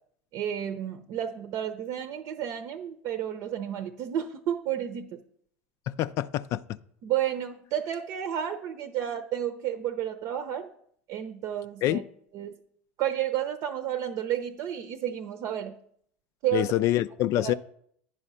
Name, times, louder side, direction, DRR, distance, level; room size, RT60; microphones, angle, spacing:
voice 1, 0.3-5.2 7.0-10.7 11.1-12.0 12.3-12.5 13.0-15.7 16.4-16.7 17.4-17.5, right 10 dB, 55° right, 0.7 m, -31 dB
voice 2, 5.9-6.6 11.8-12.0 16.5-17.5, left 14 dB, 55° left, 0.4 m, -26 dB
10.0 x 4.9 x 5.6 m
hypercardioid pair, 85°, 6 cm